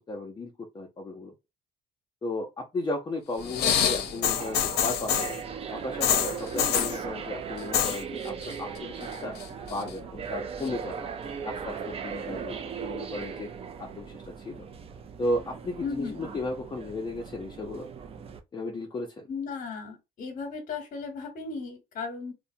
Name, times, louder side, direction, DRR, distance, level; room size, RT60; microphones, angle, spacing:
voice 1, 0.1-1.3 2.2-5.3 5.7-9.4 9.7-11.1 11.4-13.5 13.8-14.6 15.2-17.9 18.5-19.3, left 2 dB, 25° left, 0.6 m, -35 dB
sound 1, 3.4-5.4 6.0-7.0 7.6-8.0 8.3-8.8 9.1-9.9 10.7-10.8, left 9 dB, 70° left, 0.6 m, -26 dB
sound 2, 3.4-18.4, right 6 dB, 35° right, 0.4 m, -38 dB
voice 2, 15.8-16.2 19.3-22.3, left 5 dB, 50° left, 0.9 m, -35 dB
2.8 x 2.1 x 2.6 m
cardioid pair, 110°, 17 cm